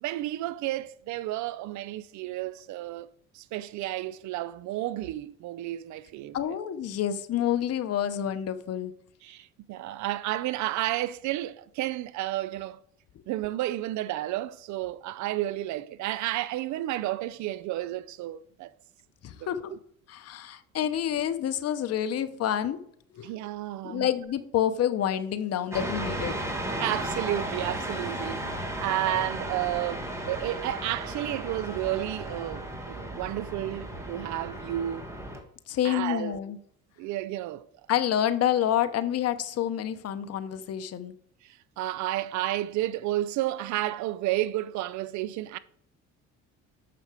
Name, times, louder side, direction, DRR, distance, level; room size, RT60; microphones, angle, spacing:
voice 1, 0.0-3.1 3.3-6.4 9.2-12.8 13.3-18.7 19.4-19.8 23.2-24.1 26.8-35.0 35.8-36.4 37.0-37.7 41.8-45.6, right 14 dB, 65° right, 0.5 m, -31 dB
voice 2, 6.3-8.9 19.2-19.7 20.1-22.8 23.1-23.3 23.8-26.4 35.7-36.6 37.9-41.1, left 10 dB, 55° left, 0.8 m, -28 dB
sound 1, 25.7-35.4, right 1 dB, 10° right, 1.6 m, -35 dB
6.8 x 5.6 x 4.8 m
supercardioid pair, 90°, 31 cm